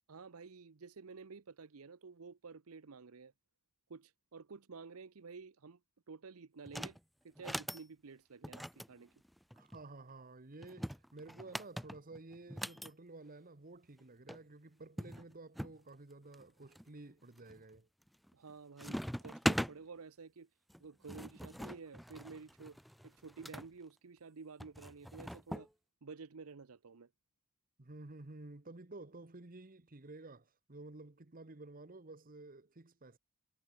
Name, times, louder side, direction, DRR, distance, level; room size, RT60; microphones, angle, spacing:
voice 1, 0.1-3.3 3.9-5.8 6.1-7.0 7.2-9.1 18.3-20.5 20.8-25.7 26.0-27.1, right 4 dB, 75° right, 0.7 m, -51 dB
sound 1, 6.7-7.0 7.4-7.8 8.4-9.8 10.6-12.9 14.0-14.1 14.3-14.4 15.0-15.8 16.3-16.8 17.4-17.8 18.1-18.5 18.8-19.7 20.7-23.7 24.6-25.7, equal, ahead, 0.3 m, -41 dB
voice 2, 9.5-17.9 27.8-33.2, right 2 dB, 40° right, 1.2 m, -52 dB
head